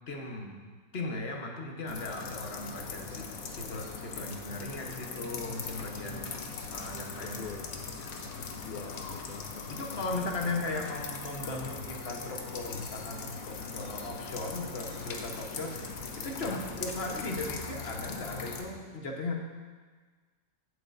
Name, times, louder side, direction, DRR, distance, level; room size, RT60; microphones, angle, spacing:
voice 1, 0.1-0.6 0.9-6.3 6.7-7.6 8.0-8.6 9.7-19.4, left 2 dB, 45° left, 1 dB, 1.3 m, -37 dB
sound 1, 1.9-18.6, left 4 dB, 65° left, 1.2 m, -40 dB
voice 2, 6.1-6.5 7.2-7.8 8.6-10.0 16.4-16.6, left 6 dB, 80° left, 6 dB, 0.4 m, -44 dB
15.0 x 8.0 x 2.6 m, 1.5 s
omnidirectional pair, 1.7 m